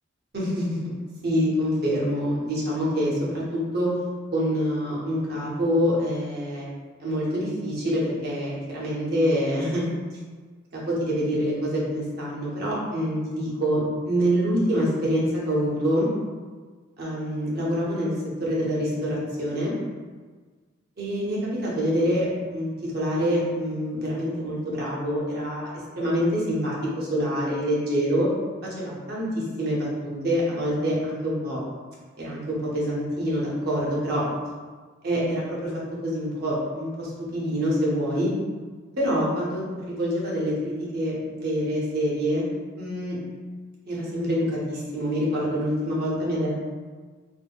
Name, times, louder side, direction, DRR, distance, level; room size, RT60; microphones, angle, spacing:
voice 1, 0.3-0.8 1.2-4.0 4.3-6.7 7.0-9.8 10.7-16.1 17.0-18.1 18.4-19.8 21.0-28.3 28.6-31.6 32.2-34.2 35.0-35.7 36.0-38.3 39.0-42.5 42.8-43.2 43.9-46.5, equal, 50° right, -6 dB, 0.8 m, -26 dB
3.4 x 2.0 x 2.3 m, 1.4 s
head